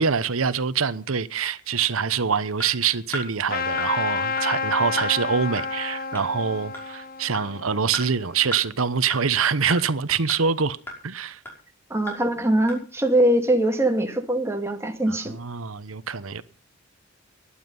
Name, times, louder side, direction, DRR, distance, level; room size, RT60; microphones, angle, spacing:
voice 1, 0.0-10.8 11.0-11.4 15.3-16.4, right 6 dB, 85° right, 1.0 m, -25 dB
sound 1, 2.6-2.7 3.1-3.3 3.8-3.9 4.4-4.5 5.0-5.1 5.6-5.7 6.2-6.3 6.7-6.9 7.3-7.5 7.9-8.0 8.5-8.6 9.1-9.2 9.7-9.8 10.3-10.4 10.9-11.0 11.5-11.6 12.1-12.2 12.7-12.8, left 1 dB, 10° left, 5.4 m, -32 dB
Trumpet, 3.5-8.5, left 4 dB, 45° left, 1.2 m, -30 dB
voice 2, 11.9-15.3, right 1 dB, 15° right, 2.2 m, -22 dB
15.5 x 11.5 x 5.5 m
head